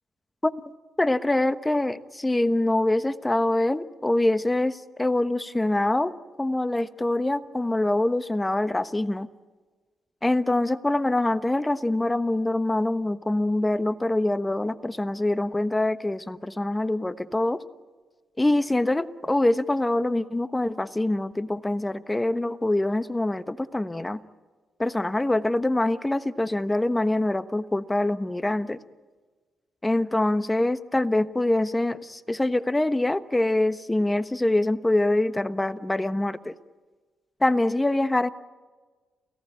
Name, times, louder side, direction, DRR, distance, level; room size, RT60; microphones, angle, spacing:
voice 1, 1.0-6.1 6.4-9.3 10.2-17.6 18.4-24.2 24.8-28.8 29.8-36.5 37.4-38.3, left 1 dB, 15° left, 12 dB, 1.1 m, -24 dB
29.0 x 17.5 x 8.8 m, 1.3 s
supercardioid pair, 65°, 0 cm